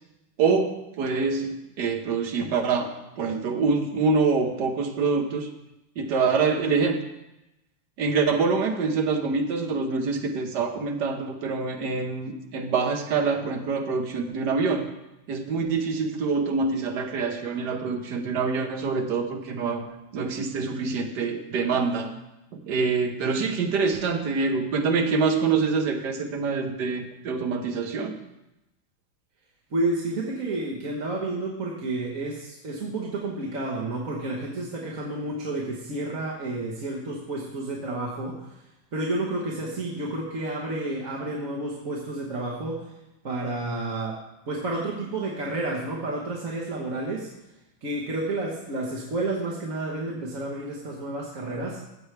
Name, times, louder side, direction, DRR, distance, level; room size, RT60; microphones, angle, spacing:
voice 1, 0.4-5.5 6.0-7.0 8.0-14.8 15.3-19.9 20.1-22.1 22.7-28.1, right 4 dB, 65° right, 5 dB, 1.5 m, -25 dB
voice 2, 29.7-38.6 38.9-42.9 43.2-44.2 44.5-47.3 47.8-51.8, right 2 dB, 45° right, -3 dB, 1.5 m, -30 dB
14.0 x 7.9 x 3.3 m, 0.95 s
omnidirectional pair, 2.1 m